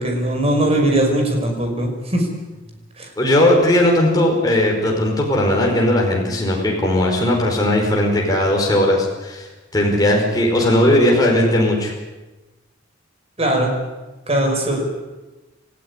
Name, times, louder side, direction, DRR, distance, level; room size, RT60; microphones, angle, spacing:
voice 1, 0.0-2.3 3.0-3.1 13.4-13.7 14.3-14.9, right 1 dB, 30° right, 3 dB, 5.6 m, -19 dB
voice 2, 3.2-9.5 9.7-11.9, left 1 dB, 20° left, -1 dB, 5.0 m, -17 dB
28.0 x 15.5 x 9.8 m, 1.1 s
head